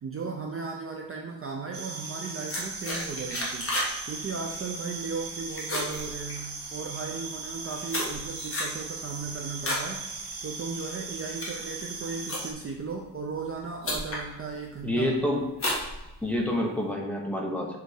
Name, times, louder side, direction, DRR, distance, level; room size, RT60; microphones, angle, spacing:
voice 1, 0.0-3.7 4.1-15.1, right 4 dB, 30° right, 1 dB, 0.5 m, -36 dB
sound 1, 1.7-12.5, right 4 dB, 65° right, 2.1 m, -38 dB
sound 2, 2.5-4.0 4.3-4.6 5.0-5.3 5.6-6.8 7.4-9.9 10.3-10.6 11.1-12.8 13.5-13.6 13.8-14.3 14.7-15.1 15.5-16.5, left 1 dB, 30° left, 1.4 m, -32 dB
voice 2, 14.8-15.4 16.2-17.8, left 1 dB, 5° left, -2 dB, 0.8 m, -27 dB
6.7 x 3.4 x 4.9 m, 0.97 s
wide cardioid pair, 180°, 44 cm